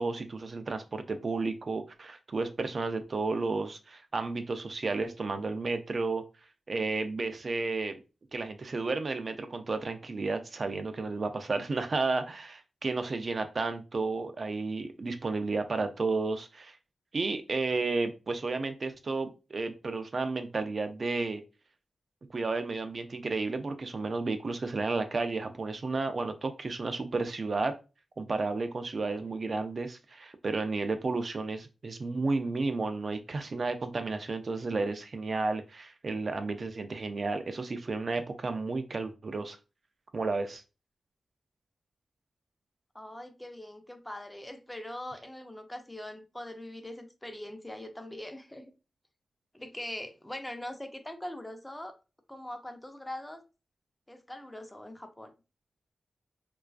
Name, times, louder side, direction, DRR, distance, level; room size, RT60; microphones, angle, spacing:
voice 1, 0.0-6.2 6.7-8.0 8.3-16.8 17.1-21.4 22.3-27.7 28.2-39.6 40.1-40.6, right 3 dB, 55° right, 7 dB, 0.3 m, -32 dB
voice 2, 42.9-48.7 49.5-51.9 52.3-53.4 54.1-55.3, left 1 dB, 15° left, 6 dB, 0.5 m, -42 dB
2.3 x 2.3 x 2.3 m, 0.31 s
cardioid pair, 60°, 0 cm